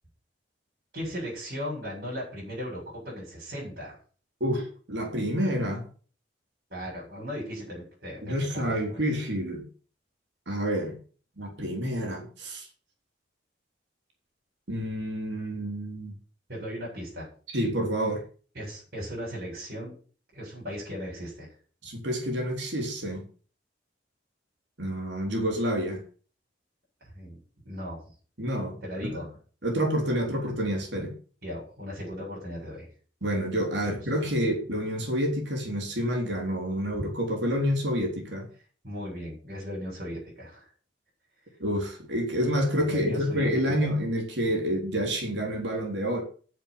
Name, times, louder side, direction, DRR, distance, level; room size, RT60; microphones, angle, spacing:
voice 1, 0.9-4.0 6.7-9.0 16.5-17.3 18.5-19.9 20.3-21.5 27.0-27.4 27.6-28.0 28.8-29.3 31.4-32.9 38.8-40.7 42.8-43.8, equal, 55° right, -4 dB, 7.6 m, -37 dB
voice 2, 4.4-5.9 8.2-9.6 10.5-10.9 11.4-12.7 14.7-16.1 17.5-18.2 21.8-23.3 24.8-26.0 28.4-29.2 29.6-31.1 33.2-38.5 41.6-46.2, equal, 70° right, 1 dB, 3.8 m, -28 dB
9.9 x 7.6 x 8.8 m, 0.41 s
head